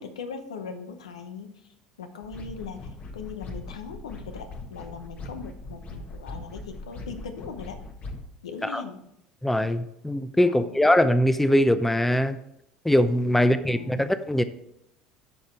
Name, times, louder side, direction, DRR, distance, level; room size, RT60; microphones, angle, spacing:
voice 1, 0.0-7.8 8.4-9.1 10.4-10.8 13.3-14.1, left 5 dB, 85° left, 8 dB, 0.8 m, -40 dB
sound 1, 2.2-8.3, left 2 dB, 40° left, 1.3 m, -40 dB
voice 2, 9.4-12.4 12.8-14.4, left 1 dB, 5° left, 12 dB, 0.6 m, -22 dB
9.1 x 5.4 x 4.4 m, 0.81 s
hypercardioid pair, 70°, 3 cm